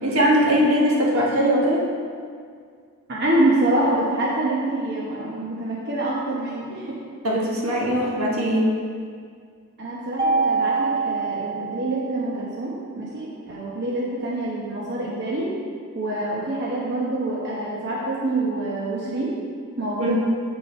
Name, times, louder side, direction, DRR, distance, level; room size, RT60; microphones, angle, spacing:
voice 1, 0.0-1.8 7.2-8.7 20.0-20.2, equal, 70° right, -4 dB, 1.5 m, -20 dB
voice 2, 3.1-7.0 9.8-15.5 15.9-19.3 19.8-20.2, right 1 dB, 50° right, -6 dB, 1.0 m, -26 dB
Mallet percussion, 10.2-12.4, right 4 dB, 20° right, 0.3 m, -25 dB
7.8 x 5.6 x 4.4 m, 2.1 s
head